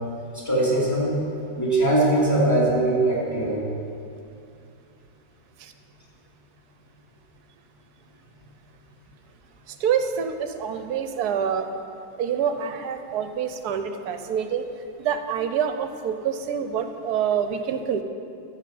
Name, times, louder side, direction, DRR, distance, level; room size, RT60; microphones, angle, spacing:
voice 1, 0.3-1.1 1.6-3.6, right 1 dB, 10° left, -6 dB, 2.6 m, -21 dB
voice 2, 9.7-11.7 12.2-14.6 15.0-18.0, right 7 dB, 65° right, 8 dB, 1.1 m, -26 dB
12.0 x 6.9 x 7.7 m, 2.6 s
omnidirectional pair, 2.1 m